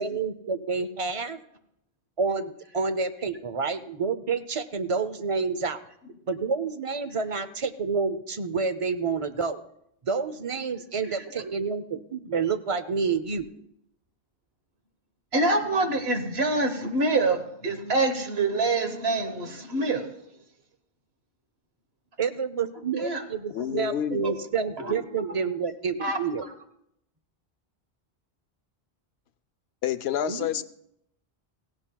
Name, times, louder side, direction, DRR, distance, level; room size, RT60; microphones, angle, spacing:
voice 1, 0.0-1.4 2.2-5.8 6.3-9.6 10.0-13.5 22.2-26.4 30.3-30.5, right 5 dB, 40° right, 0.6 m, -29 dB
voice 2, 11.1-11.5 15.3-20.1 23.0-23.2 23.6-23.7 24.1-24.4 24.8-25.0 26.0-26.2, right 2 dB, 80° right, 1.5 m, -26 dB
voice 3, 23.5-24.3 29.8-30.6, left 10 dB, 90° left, 0.9 m, -28 dB
17.0 x 16.0 x 2.3 m
omnidirectional pair, 1.0 m